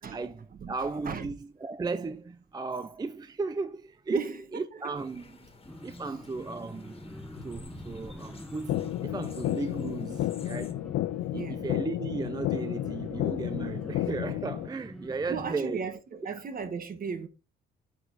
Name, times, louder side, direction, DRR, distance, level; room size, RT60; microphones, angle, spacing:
voice 1, 0.0-5.5 5.8-7.1 7.4-10.9 11.3-15.8 16.2-16.4, right 4 dB, 20° right, 0.5 m, -35 dB
voice 2, 4.1-4.8 11.3-11.7 15.3-17.3, right 6 dB, 45° right, 1.3 m, -36 dB
sound 1, 4.9-10.7, left 4 dB, 30° left, 1.9 m, -52 dB
sound 2, 5.6-15.5, equal, ahead, 1.1 m, -45 dB
sound 3, 8.7-14.7, left 15 dB, 80° left, 0.5 m, -32 dB
8.0 x 5.0 x 4.0 m
cardioid pair, 90°, 20 cm